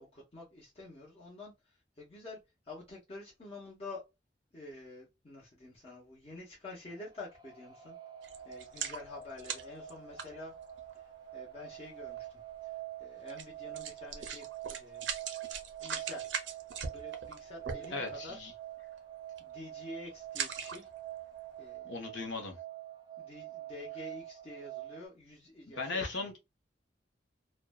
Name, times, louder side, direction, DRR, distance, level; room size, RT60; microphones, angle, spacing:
voice 1, 0.0-2.4 2.6-4.0 4.5-8.0 8.4-10.5 10.9-15.1 15.8-16.3 16.9-18.5 19.4-20.9 21.6-22.2 23.2-26.3, left 2 dB, 35° left, 0.8 m, -48 dB
sound 1, 6.9-25.1, right 12 dB, 25° right, 0.5 m, -46 dB
sound 2, 8.2-10.9 11.7-11.8 12.2-12.3 13.3-13.4 13.7-18.3 18.8-19.0 19.3-19.6 20.2-21.1 21.6-21.7, right 6 dB, 85° right, 0.6 m, -40 dB
voice 2, 17.9-18.5 21.8-22.6 25.8-26.4, left 3 dB, 80° left, 0.9 m, -37 dB
2.5 x 2.2 x 2.2 m
head